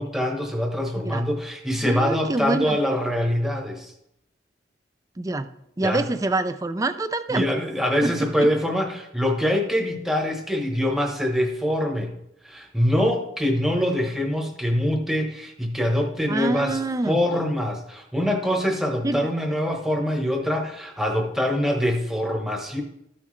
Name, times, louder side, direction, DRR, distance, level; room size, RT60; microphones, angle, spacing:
voice 1, 0.0-3.9 5.8-6.0 7.3-12.1 12.4-16.8 17.1-22.8, equal, ahead, 2 dB, 1.0 m, -24 dB
voice 2, 1.8-2.8 5.2-5.5 5.8-7.5 8.0-8.1 8.4-8.5 16.3-17.2 19.0-19.3, right 2 dB, 20° right, 11 dB, 0.4 m, -26 dB
13.5 x 5.8 x 3.2 m, 0.79 s
head